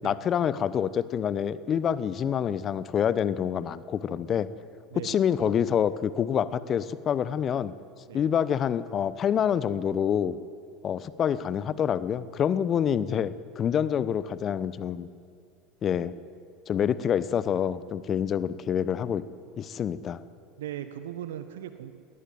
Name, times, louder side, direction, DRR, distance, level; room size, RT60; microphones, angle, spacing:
voice 1, 0.0-4.5 5.0-7.7 8.1-10.4 10.8-15.1 15.8-16.1 16.7-19.3 19.6-20.2, left 8 dB, 35° left, 16 dB, 1.0 m, -27 dB
voice 2, 20.6-21.9, right 11 dB, 70° right, 10 dB, 1.1 m, -38 dB
21.0 x 18.5 x 9.4 m, 2.4 s
figure-of-eight pair, 75°, 0 cm